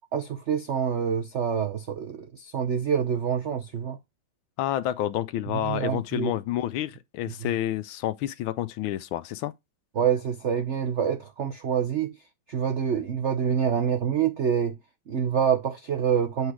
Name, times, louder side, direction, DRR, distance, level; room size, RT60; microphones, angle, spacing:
voice 1, 0.1-4.0 5.5-6.3 7.3-7.5 10.0-12.1 12.5-14.8 15.1-16.5, right 7 dB, 70° right, 0.6 m, -26 dB
voice 2, 4.6-9.5, left 12 dB, 80° left, 1.4 m, -29 dB
8.2 x 4.0 x 4.8 m
omnidirectional pair, 2.2 m